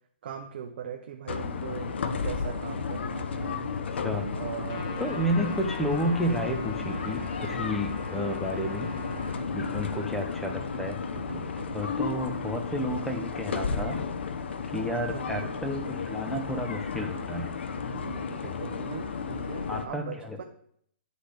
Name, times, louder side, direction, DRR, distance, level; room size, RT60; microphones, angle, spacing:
voice 1, 0.2-1.9 2.2-3.7 4.3-5.5 15.1-15.5 17.9-20.4, right 8 dB, 55° right, 3 dB, 0.8 m, -40 dB
sound 1, 1.3-19.9, left 5 dB, 70° left, 0.8 m, -33 dB
voice 2, 3.9-4.3 5.0-8.9 9.5-11.0 11.3-11.4 11.7-14.0 14.7-17.5 19.7-20.4, equal, 5° left, 3 dB, 1.0 m, -31 dB
sound 2, 4.2-5.7 6.1-7.9 8.4-10.1 10.7-12.3, right 4 dB, 85° right, 1.0 m, -44 dB
Trumpet, 4.7-9.4, left 4 dB, 35° left, 1.4 m, -43 dB
10.0 x 4.2 x 5.1 m, 0.67 s
hypercardioid pair, 140°, 6 cm